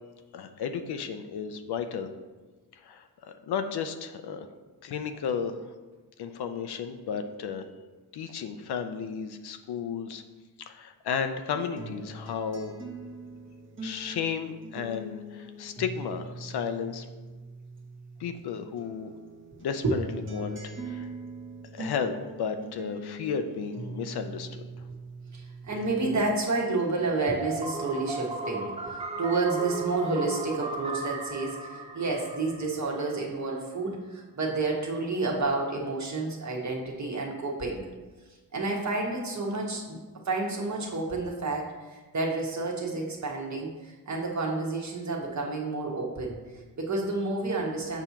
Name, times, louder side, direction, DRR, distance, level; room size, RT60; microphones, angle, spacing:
voice 1, 0.3-2.1 2.8-4.5 4.8-5.7 6.2-7.6 8.1-10.2 10.7-12.8 13.8-17.1 18.2-19.1 19.6-21.1 21.7-24.6, left 6 dB, 85° left, 8 dB, 0.6 m, -33 dB
sound 1, 11.8-18.4 18.8-26.4 26.8-27.8, right 2 dB, 30° right, 1.0 m, -42 dB
voice 2, 25.3-37.8 38.5-40.0 40.2-48.0, right 3 dB, 50° right, -1 dB, 1.3 m, -30 dB
sound 2, 27.4-33.2, right 3 dB, 15° right, 0.5 m, -36 dB
7.0 x 2.8 x 5.9 m, 1.3 s
wide cardioid pair, 115°, 38 cm